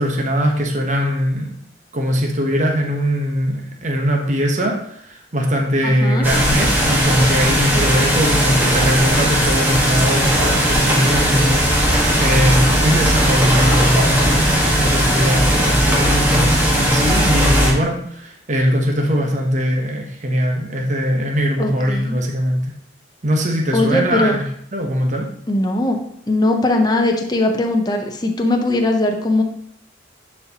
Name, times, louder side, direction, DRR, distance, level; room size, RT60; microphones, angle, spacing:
voice 1, 0.0-1.5 1.9-22.7 23.2-24.4 24.7-25.3, equal, 40° right, 1 dB, 1.0 m, -20 dB
voice 2, 5.8-6.2 7.7-7.8 21.6-22.2 23.7-24.4 25.5-26.0 26.3-29.4, left 2 dB, 20° left, 3 dB, 0.7 m, -19 dB
sound 1, 6.2-17.7, equal, 10° right, 1.3 m, -17 dB
10.5 x 4.4 x 2.9 m, 0.69 s
head